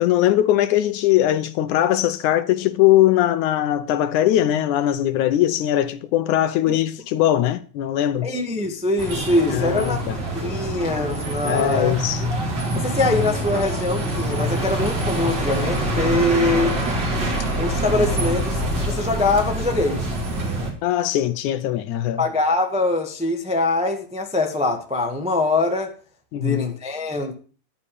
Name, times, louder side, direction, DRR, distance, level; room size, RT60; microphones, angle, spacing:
voice 1, 0.0-8.3 9.5-10.2 11.4-12.2 20.8-22.3 26.3-26.7, left 13 dB, 75° left, 2.0 m, -20 dB
voice 2, 8.2-10.0 10.3-11.9 12.7-16.8 17.6-20.1 22.2-25.9 26.3-27.3, left 2 dB, 5° right, 0.5 m, -23 dB
sound 1, 9.0-20.7, right 1 dB, 35° right, 3.1 m, -25 dB
13.0 x 9.8 x 4.9 m
omnidirectional pair, 3.8 m